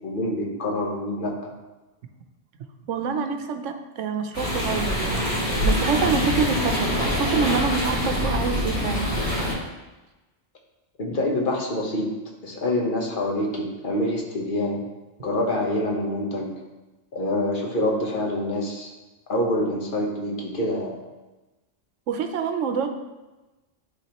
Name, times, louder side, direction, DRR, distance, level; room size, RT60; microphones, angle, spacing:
voice 1, 0.0-1.5 11.0-12.1 12.4-14.8 15.2-16.5 17.1-18.9 19.3-20.9, left 1 dB, 45° left, 0 dB, 1.2 m, -26 dB
voice 2, 2.9-9.1 22.1-22.9, right 6 dB, 80° right, 6 dB, 1.0 m, -27 dB
sound 1, 4.3-9.5, left 1 dB, 60° left, 2.4 m, -24 dB
11.0 x 3.7 x 2.9 m, 1.1 s
omnidirectional pair, 1.3 m